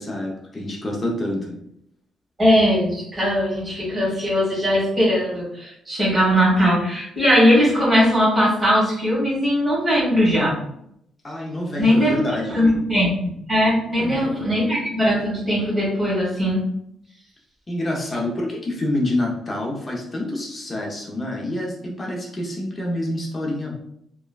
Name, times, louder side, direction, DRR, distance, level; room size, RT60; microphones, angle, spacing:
voice 1, 0.0-1.5 11.2-12.6 14.0-14.4 17.7-23.7, left 1 dB, 30° left, -1 dB, 0.6 m, -27 dB
voice 2, 2.4-10.5 11.8-12.2 12.5-13.1 13.5-16.6, equal, 25° right, -6 dB, 1.5 m, -19 dB
2.9 x 2.2 x 2.3 m, 0.73 s
cardioid pair, 90°, 0 cm